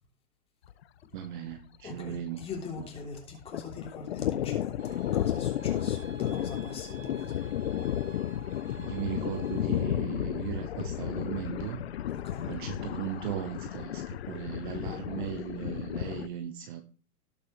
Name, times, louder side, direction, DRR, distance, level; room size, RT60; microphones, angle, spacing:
Thunder, 0.7-0.8 1.1-1.2 1.5-3.0 3.3-16.3, left 11 dB, 45° left, 0.6 m, -33 dB
voice 1, 1.1-2.5 2.8-3.0 8.8-11.8 12.4-16.8, right 11 dB, 30° right, 1.0 m, -37 dB
voice 2, 1.8-7.4 12.1-12.5, left 4 dB, 10° left, 3.2 m, -43 dB
sound 1, 4.8-9.8, right 4 dB, 65° right, 4.9 m, -51 dB
18.0 x 6.1 x 3.1 m
hypercardioid pair, 160°, 46 cm